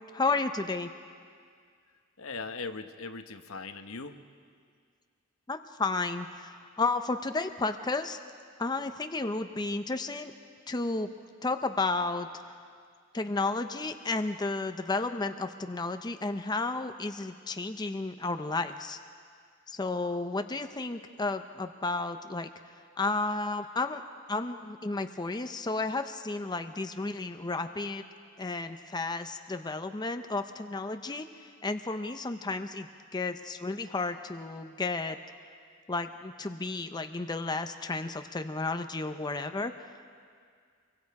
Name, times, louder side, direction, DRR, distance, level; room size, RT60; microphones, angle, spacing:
voice 1, 0.1-0.9 5.5-8.2 8.6-10.3 10.7-11.1 11.4-12.3 13.1-19.0 19.7-22.5 23.0-24.0 24.3-28.0 28.4-35.2 35.9-39.7, left 3 dB, 20° left, 7 dB, 0.6 m, -32 dB
voice 2, 2.2-4.2, left 4 dB, 75° left, 8 dB, 1.1 m, -39 dB
25.5 x 23.0 x 4.8 m, 2.1 s
head